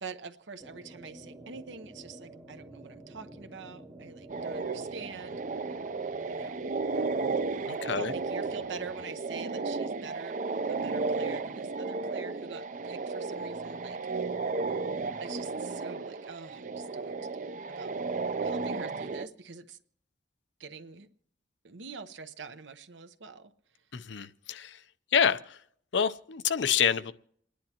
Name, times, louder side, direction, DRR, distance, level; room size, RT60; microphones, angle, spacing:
voice 1, 0.0-5.4 6.3-6.7 7.9-10.4 10.7-14.4 15.2-18.0 18.4-19.8 20.6-21.1 21.6-23.5, right 5 dB, 85° right, 0.9 m, -45 dB
sound 1, 0.6-9.1, right 1 dB, 15° right, 0.8 m, -49 dB
sound 2, 4.3-19.3, right 4 dB, 45° right, 0.5 m, -34 dB
voice 2, 7.7-8.1 23.9-24.8 25.1-25.6 25.9-27.1, left 7 dB, 80° left, 0.6 m, -27 dB
28.5 x 10.5 x 2.9 m
head